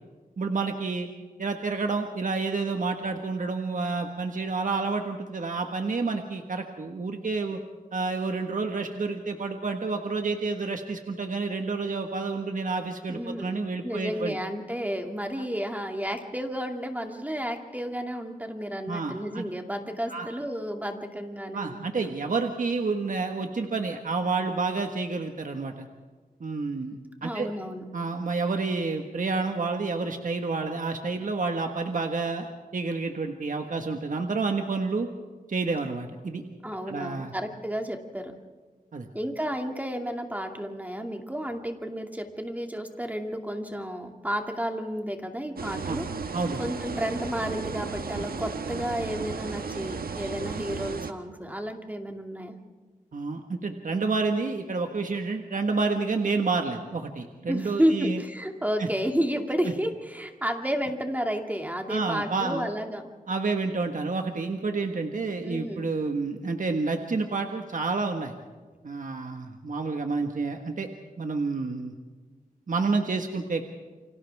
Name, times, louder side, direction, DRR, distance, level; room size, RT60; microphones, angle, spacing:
voice 1, 0.4-1.1 1.4-7.6 7.9-14.3 18.9-19.4 20.1-20.3 21.5-25.8 26.4-27.5 27.9-32.5 32.7-35.1 35.5-36.4 36.9-37.3 38.9-39.1 45.9-46.0 46.3-46.6 53.1-58.2 58.8-58.9 61.9-62.7 63.3-68.3 68.8-70.9 71.2-71.9 72.7-73.6, right 4 dB, 60° right, 4 dB, 1.6 m, -29 dB
voice 2, 13.1-21.8 27.2-27.8 36.6-38.3 39.1-46.1 46.6-52.5 57.5-63.1 65.4-65.8, equal, 10° right, 3 dB, 2.5 m, -31 dB
sound 1, 45.6-51.1, right 5 dB, 90° right, 1.3 m, -34 dB
29.5 x 25.5 x 3.6 m, 1.4 s
wide cardioid pair, 90°, 15 cm